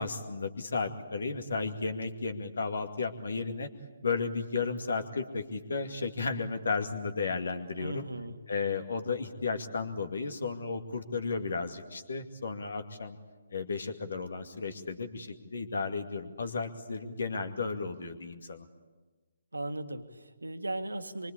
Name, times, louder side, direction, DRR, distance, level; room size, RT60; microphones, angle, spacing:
voice 1, 0.0-3.7 4.0-8.0 8.5-13.2 13.5-18.7, left 4 dB, 60° left, 7 dB, 2.3 m, -34 dB
voice 2, 7.8-8.4 19.5-21.3, right 1 dB, 75° right, 7 dB, 1.8 m, -37 dB
25.5 x 24.0 x 8.7 m, 1.3 s
figure-of-eight pair, 140°, 0 cm